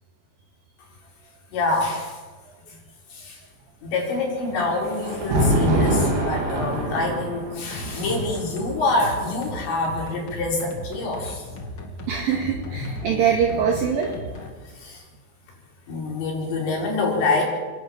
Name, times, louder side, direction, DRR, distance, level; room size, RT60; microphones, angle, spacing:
voice 1, 1.5-2.2 3.1-3.4 3.8-11.5 14.8-15.0 15.9-17.4, left 2 dB, 70° left, -1 dB, 7.0 m, -26 dB
Thunder, 4.1-11.3 12.3-14.1, right 1 dB, 80° right, 6.1 m, -27 dB
sound 1, 7.7-14.5, left 1 dB, 40° left, 1.8 m, -38 dB
voice 2, 12.1-14.2, right 7 dB, 55° right, 1 dB, 3.3 m, -23 dB
29.5 x 11.5 x 8.8 m, 1.4 s
omnidirectional pair, 5.4 m